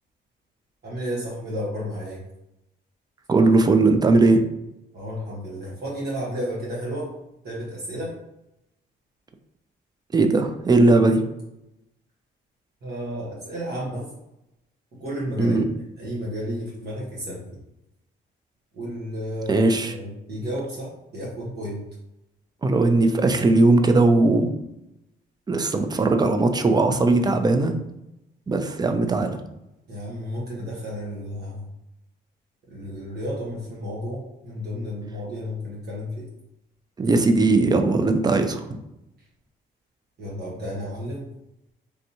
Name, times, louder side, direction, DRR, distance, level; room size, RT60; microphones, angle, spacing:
voice 1, 0.8-2.2 4.9-7.1 7.4-8.2 12.8-14.1 14.9-15.6 16.0-17.6 18.7-21.8 29.9-31.7 32.7-36.3 39.2-39.3 40.2-41.3, equal, 55° right, -5 dB, 1.0 m, -32 dB
voice 2, 3.3-4.4 10.1-11.2 15.4-15.6 19.5-19.9 22.6-24.6 25.5-27.7 28.5-29.4 37.0-38.7, right 3 dB, 20° right, 7 dB, 0.4 m, -19 dB
3.4 x 2.6 x 2.7 m, 0.89 s
cardioid pair, 90°, 20 cm